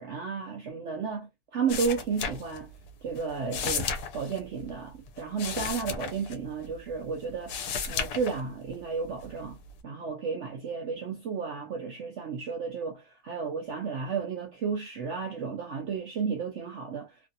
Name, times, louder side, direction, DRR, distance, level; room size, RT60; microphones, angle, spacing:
voice 1, 0.0-2.7 3.0-7.5 7.9-9.6 9.8-17.1, right 5 dB, 90° right, 0.6 m, -33 dB
sound 1, 1.7-2.9 3.2-6.9 7.3-8.7 9.2-9.8, left 6 dB, 70° left, 1.1 m, -34 dB
2.9 x 2.6 x 2.6 m
omnidirectional pair, 1.9 m